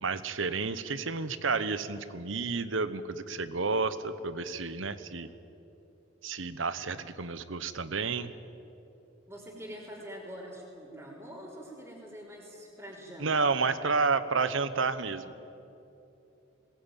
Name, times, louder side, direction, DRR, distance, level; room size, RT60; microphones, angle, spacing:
voice 1, 0.0-5.3 6.2-8.3 13.2-15.3, right 4 dB, 75° right, 13 dB, 1.0 m, -30 dB
voice 2, 9.3-13.5, equal, 10° right, -6 dB, 3.6 m, -45 dB
21.0 x 19.5 x 9.1 m, 3.0 s
head